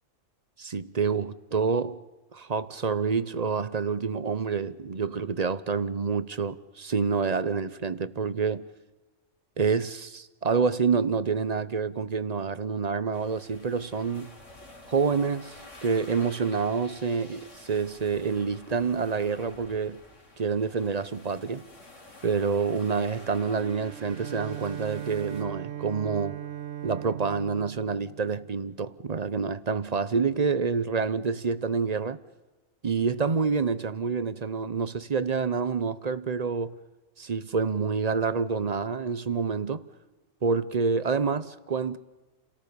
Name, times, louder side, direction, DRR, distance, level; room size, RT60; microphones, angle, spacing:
voice 1, 0.6-2.0 2.3-8.6 9.6-14.3 14.9-15.6 15.8-20.0 20.4-21.6 22.2-26.4 26.8-32.2 32.8-36.7 37.2-39.8 40.4-42.0, right 5 dB, 35° right, 0.8 m, -27 dB
sound 1, 13.1-25.4, left 2 dB, 75° left, 3.4 m, -50 dB
Bowed string instrument, 23.4-28.9, right 11 dB, 75° right, 1.3 m, -39 dB
30.0 x 18.0 x 6.9 m
omnidirectional pair, 1.3 m